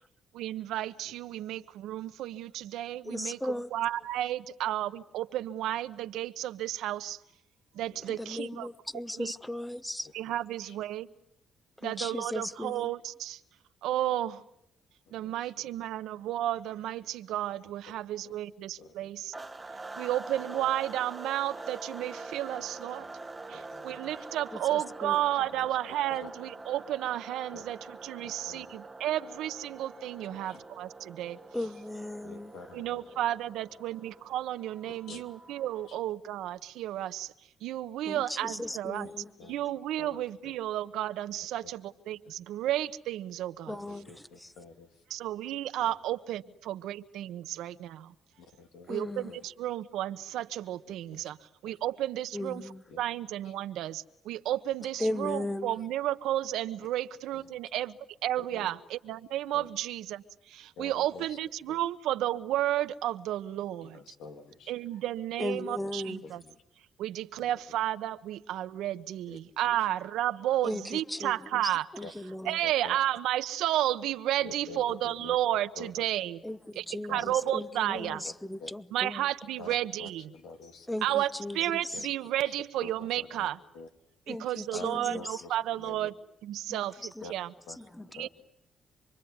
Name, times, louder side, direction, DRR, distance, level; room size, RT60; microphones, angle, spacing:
voice 1, 0.3-7.2 7.7-8.7 9.2-9.3 10.1-11.1 11.8-13.4 13.8-14.4 15.1-19.3 20.0-23.0 23.5-31.4 32.7-37.3 37.6-39.1 39.5-43.7 45.1-48.1 48.9-51.4 51.6-64.0 64.7-66.4 67.0-71.9 72.4-76.4 76.7-78.2 78.9-80.3 81.0-83.6 84.3-86.1 86.4-87.5 88.1-88.3, right 13 dB, 90° right, 1.2 m, -32 dB
voice 2, 3.0-3.7 8.1-10.1 11.8-12.9 24.7-25.2 31.5-32.5 38.1-39.3 43.7-44.5 48.9-49.3 52.3-52.8 55.0-55.7 65.4-66.2 70.6-71.3 71.6-72.6 76.4-76.6 76.9-79.2 80.9-81.6 84.3-85.4 86.7-86.8 87.2-87.3 87.8-88.3, left 1 dB, 5° left, 1.2 m, -37 dB
voice 3, 15.1-15.5 18.8-19.1 23.0-23.1 23.5-24.1 25.4-25.7 26.1-26.3 27.5-27.7 28.2-28.7 30.3-30.6 32.2-33.0 34.9-35.2 35.9-36.0 39.0-39.1 39.4-39.5 40.0-40.5 43.7-44.9 45.8-45.9 48.4-49.0 49.3-49.4 51.2-51.3 51.6-51.8 52.9-53.0 57.3-57.4 58.5-58.7 59.5-59.7 60.8-61.4 61.7-61.8 63.8-64.7 65.5-65.9 66.2-66.6 67.4-67.5 69.3-69.4 69.7-69.9 72.0-72.1 72.6-73.0 74.4-75.4 75.8-76.0 77.1-77.3 78.0-78.3 78.6-78.7 79.6-81.3 81.9-82.0 82.4-82.5 82.8-83.5 83.7-83.9 84.7-84.9 85.1-86.1 87.2-87.3 87.7-87.8 88.1-88.3, left 4 dB, 80° left, 2.9 m, -47 dB
sound 1, 19.3-36.0, right 3 dB, 20° right, 1.3 m, -45 dB
27.5 x 22.5 x 9.6 m
cardioid pair, 90°, 0 cm